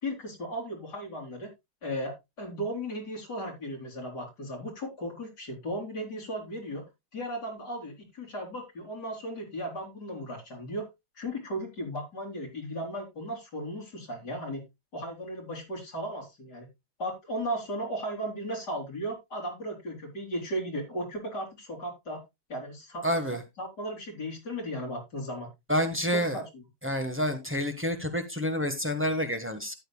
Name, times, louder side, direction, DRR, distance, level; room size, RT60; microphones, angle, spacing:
voice 1, 0.0-1.5 1.8-6.8 7.1-10.9 11.2-14.6 14.9-16.7 17.0-22.2 22.5-23.1 23.6-25.5 26.1-26.6, equal, 75° left, -1 dB, 4.1 m, -36 dB
voice 2, 23.0-23.4 25.7-26.4 26.8-29.7, equal, 10° right, 6 dB, 1.2 m, -28 dB
13.0 x 9.2 x 2.3 m, 0.22 s
omnidirectional pair, 1.8 m